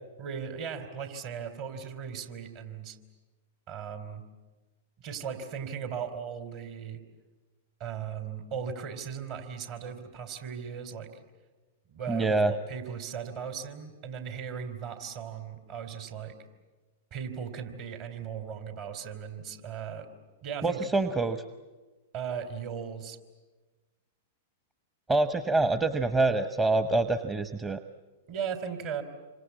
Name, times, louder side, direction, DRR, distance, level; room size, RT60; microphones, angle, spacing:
voice 1, 0.2-3.0 3.7-4.2 5.0-7.0 7.8-11.1 11.9-16.4 17.1-20.1 20.4-20.9 22.1-23.2 28.3-29.0, right 7 dB, 50° right, 7 dB, 3.5 m, -37 dB
voice 2, 12.1-12.5 20.6-21.4 25.1-27.8, right 2 dB, 15° right, 9 dB, 1.0 m, -26 dB
27.5 x 25.0 x 8.4 m, 1.3 s
hypercardioid pair, 110°, 0 cm